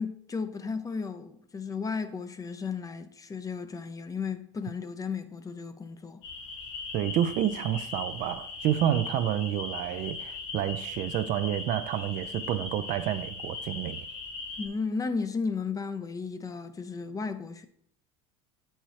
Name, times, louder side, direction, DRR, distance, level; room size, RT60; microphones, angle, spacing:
voice 1, 0.0-6.2 14.6-17.7, left 5 dB, 20° left, 0.6 m, -34 dB
sound 1, 6.2-14.7, left 3 dB, 80° left, 1.5 m, -39 dB
voice 2, 6.9-14.0, right 11 dB, 55° right, 0.5 m, -29 dB
7.9 x 4.4 x 4.7 m
supercardioid pair, 100°, 16 cm